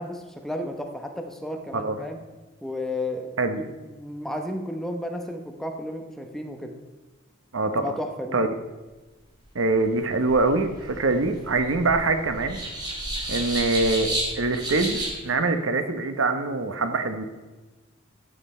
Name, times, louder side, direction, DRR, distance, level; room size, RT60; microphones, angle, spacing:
voice 1, 0.0-2.2 2.6-6.8 7.8-8.4, left 1 dB, ahead, 3 dB, 0.9 m, -33 dB
voice 2, 7.5-7.8 8.3-8.5 9.5-12.6 13.3-17.2, right 3 dB, 85° right, 8 dB, 0.9 m, -24 dB
sound 1, 9.8-15.1, right 1 dB, 20° right, 3.0 m, -32 dB
13.5 x 7.6 x 4.3 m, 1.2 s
head